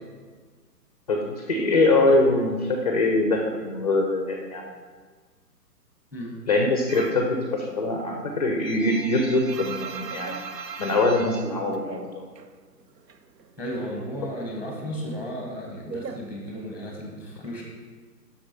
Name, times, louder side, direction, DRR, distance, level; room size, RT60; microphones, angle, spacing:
voice 1, 1.1-4.6 6.5-10.3 10.8-12.2, left 2 dB, 25° left, 2 dB, 0.4 m, -23 dB
sound 1, 6.9-7.3 7.7-12.5 12.8-13.9 14.1-17.0, right 6 dB, 80° right, 0.7 m, -39 dB
voice 2, 13.6-17.6, equal, 5° right, -1 dB, 1.2 m, -34 dB
7.8 x 6.0 x 4.3 m, 1.5 s
figure-of-eight pair, 125°, 49 cm